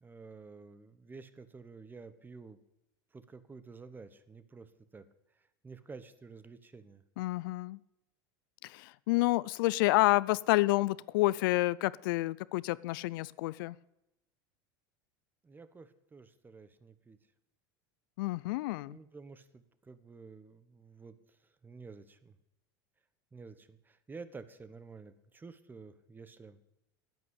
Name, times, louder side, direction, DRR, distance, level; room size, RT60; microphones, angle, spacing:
voice 1, 0.0-2.6 3.1-5.1 5.3-7.0 15.4-17.2 18.9-21.4 21.6-22.4 23.3-26.6, right 4 dB, 15° right, 13 dB, 1.0 m, -51 dB
voice 2, 7.2-7.8 8.6-13.8 18.2-19.0, left 20 dB, 75° left, 20 dB, 0.4 m, -29 dB
10.5 x 8.6 x 8.2 m, 0.90 s
supercardioid pair, 110°, 11 cm